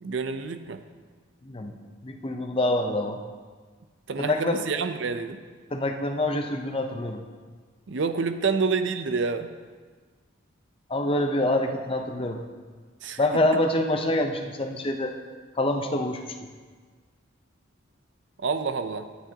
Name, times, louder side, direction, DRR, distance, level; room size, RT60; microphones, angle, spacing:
voice 1, 0.0-0.8 4.1-5.4 7.9-9.5 13.0-13.2 18.4-19.1, right 4 dB, 60° right, 9 dB, 0.5 m, -28 dB
voice 2, 2.0-3.2 4.2-4.6 5.7-7.2 10.9-12.4 13.2-15.1 15.6-16.2, left 1 dB, 25° left, 4 dB, 0.6 m, -26 dB
12.0 x 9.7 x 2.8 m, 1.5 s
head